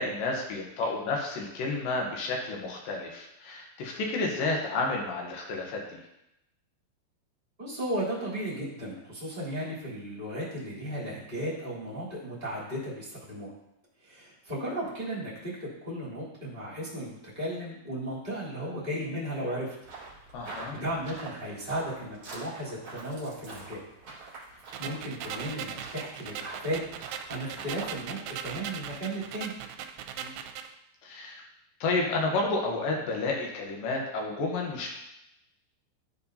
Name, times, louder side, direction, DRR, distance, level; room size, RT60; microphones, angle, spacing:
voice 1, 0.0-6.0 20.3-20.8 30.2-30.3 31.0-31.4 31.8-34.9, left 3 dB, 80° left, 0 dB, 2.0 m, -31 dB
voice 2, 7.6-13.5 14.0-19.7 20.4-23.8 24.5-29.5, right 1 dB, 15° right, -8 dB, 2.5 m, -35 dB
sound 1, 19.8-28.0, right 3 dB, 35° right, 3.5 m, -46 dB
sound 2, 24.7-30.7, right 9 dB, 85° right, 2.8 m, -39 dB
14.0 x 4.7 x 2.7 m, 0.87 s
omnidirectional pair, 5.3 m